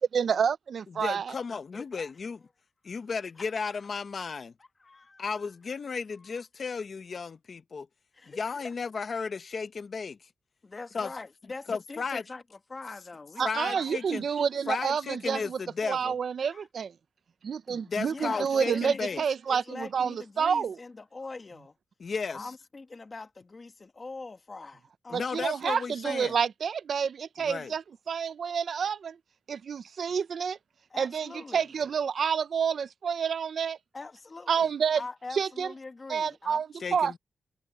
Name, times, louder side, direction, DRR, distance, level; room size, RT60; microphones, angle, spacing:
voice 1, 0.1-1.3 13.4-15.6 15.9-16.9 17.4-20.7 25.1-29.2 29.5-30.6 31.0-33.8 34.5-35.0 35.3-35.7 36.1-36.7 36.9-37.1, right 7 dB, 65° right, 0.5 m, -29 dB
voice 2, 0.9-2.4 2.8-4.5 5.2-7.9 8.3-10.3 10.9-11.1 11.7-12.2 13.4-14.3 14.7-16.2 17.7-19.2 22.0-22.5 25.1-26.3 27.4-27.7 36.8-37.2, left 5 dB, 50° left, 0.9 m, -34 dB
voice 3, 1.7-2.1 3.4-3.5 4.8-5.3 6.2-6.3 8.1-8.4 8.6-8.7 10.6-13.9 16.5-16.7 18.0-21.8 22.3-25.5 30.9-31.7 33.9-36.6, left 3 dB, 30° left, 1.6 m, -43 dB
wide cardioid pair, 130°, 0 cm